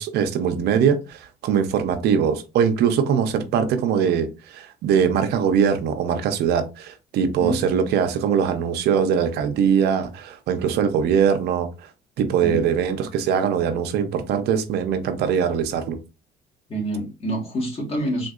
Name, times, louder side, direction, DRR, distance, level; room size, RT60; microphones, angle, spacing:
voice 1, 0.0-11.7 12.2-16.0, right 7 dB, 75° right, 0.6 m, -22 dB
voice 2, 16.7-18.3, right 1 dB, 35° left, 1.5 m, -27 dB
3.7 x 2.6 x 2.4 m
cardioid pair, 110°, 17 cm